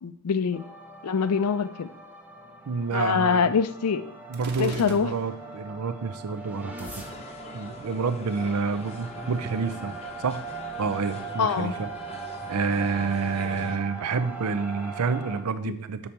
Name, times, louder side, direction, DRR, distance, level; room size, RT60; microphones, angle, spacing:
voice 1, 0.0-0.6 1.0-1.9 2.9-4.0 4.6-5.1 11.4-11.7, left 6 dB, 85° left, 0.5 m, -24 dB
sound 1, 0.5-15.4, right 4 dB, 10° right, 0.7 m, -40 dB
voice 2, 2.7-3.5 4.3-6.9 7.5-10.5 10.8-11.9 12.5-16.1, right 4 dB, 85° right, 0.5 m, -28 dB
Gunshot gunfire, 4.3-5.6, right 3 dB, 45° right, 0.8 m, -43 dB
sound 2, 6.8-13.8, left 2 dB, 30° left, 0.7 m, -43 dB
6.8 x 4.3 x 4.4 m
head